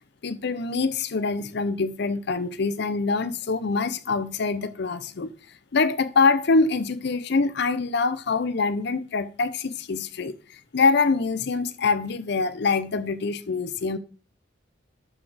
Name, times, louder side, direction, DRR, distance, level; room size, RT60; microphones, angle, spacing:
voice 1, 0.2-5.3 5.7-14.0, left 4 dB, 60° left, 0.6 m, -24 dB
11.5 x 4.3 x 4.9 m
head